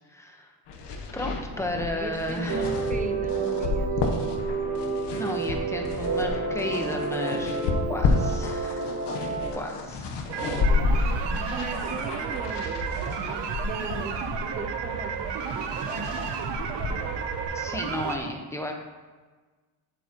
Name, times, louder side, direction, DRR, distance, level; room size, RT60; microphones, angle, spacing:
voice 1, 0.1-0.5 1.1-2.7 5.1-7.6 7.9-8.9 9.5-10.1 17.5-18.7, left 1 dB, 5° left, 2 dB, 1.0 m, -33 dB
sound 1, 0.7-17.5, left 3 dB, 80° left, 1.1 m, -31 dB
voice 2, 1.2-3.9 10.6-10.8 11.1-14.1 14.6-16.3, right 3 dB, 20° right, 6 dB, 0.8 m, -39 dB
sound 2, 2.5-9.5, right 4 dB, 45° right, 2.2 m, -30 dB
sound 3, 10.3-18.2, right 6 dB, 85° right, 0.9 m, -32 dB
8.4 x 8.2 x 3.0 m, 1.4 s
cardioid pair, 120°, 41 cm